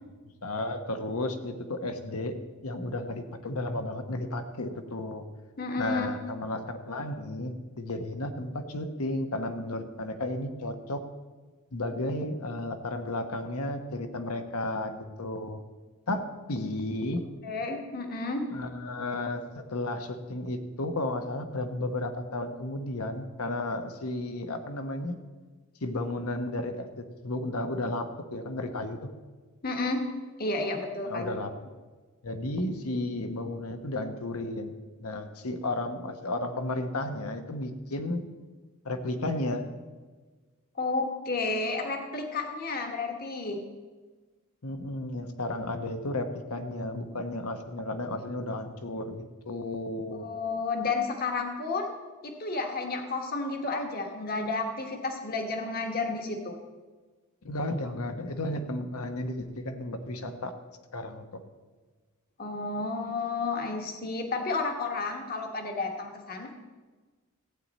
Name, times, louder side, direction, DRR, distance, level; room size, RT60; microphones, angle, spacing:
voice 1, 0.4-2.4 2.6-5.2 5.8-11.0 11.7-15.6 16.1-17.2 18.5-25.2 25.8-29.0 31.0-31.5 32.2-38.2 38.8-39.7 44.6-50.3 57.4-60.5 60.9-61.4, left 1 dB, 85° left, 7 dB, 1.1 m, -33 dB
voice 2, 5.6-6.1 17.4-18.5 29.6-30.0 30.4-31.3 40.8-43.6 50.2-51.9 52.2-56.6 62.4-66.6, left 3 dB, 45° left, 3 dB, 1.3 m, -31 dB
15.0 x 8.9 x 4.1 m, 1.3 s
head